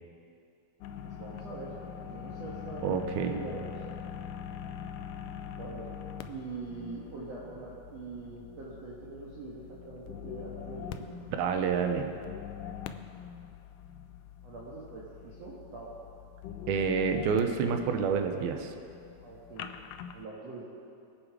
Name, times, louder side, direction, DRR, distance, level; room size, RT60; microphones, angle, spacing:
sound 1, 0.8-20.3, left 8 dB, 85° left, 1.9 m, -44 dB
voice 1, 1.0-3.7 5.6-5.9 6.3-11.0 14.4-15.9 19.2-19.7 20.1-20.6, right 3 dB, 50° right, -6 dB, 2.3 m, -43 dB
voice 2, 2.8-3.4 11.4-12.1 16.7-18.7, right 6 dB, 80° right, 6 dB, 2.7 m, -28 dB
22.5 x 8.6 x 4.9 m, 2.5 s
omnidirectional pair, 4.5 m